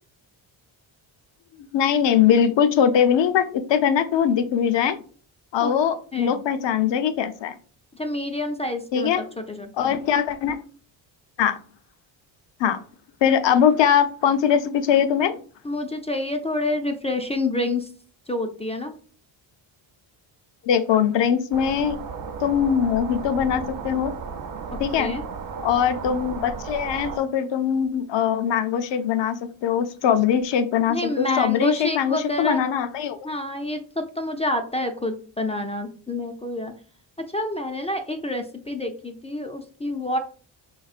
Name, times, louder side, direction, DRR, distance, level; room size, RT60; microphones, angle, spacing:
voice 1, 1.7-5.0 5.5-7.5 8.9-9.2 9.8-10.6 11.4-11.6 12.6-12.8 13.2-15.4 20.6-22.0 22.4-24.1 24.8-25.1 25.6-33.2, left 8 dB, 60° left, 11 dB, 0.6 m, -21 dB
voice 2, 6.1-6.4 8.0-10.0 15.6-17.9 18.3-19.0 24.7-25.2 30.9-32.6 33.2-36.7 37.2-40.2, left 1 dB, 15° left, 6 dB, 0.3 m, -28 dB
sound 1, 21.5-27.2, right 6 dB, 45° right, 0.6 m, -34 dB
4.8 x 3.5 x 2.4 m, 0.42 s
cardioid pair, 110°, 48 cm